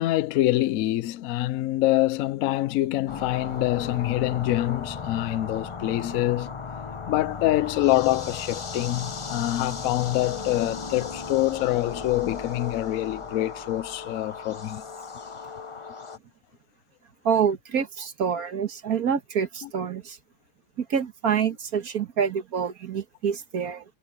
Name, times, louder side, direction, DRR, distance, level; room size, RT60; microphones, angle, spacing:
voice 1, 0.0-6.6 7.1-14.8 15.5-15.6 19.6-19.7, left 16 dB, 70° left, 0.9 m, -25 dB
sound 1, 3.1-16.2, left 5 dB, 35° left, 0.5 m, -36 dB
voice 2, 17.2-20.2 20.8-23.9, right 7 dB, 65° right, 1.9 m, -27 dB
omnidirectional pair, 1.7 m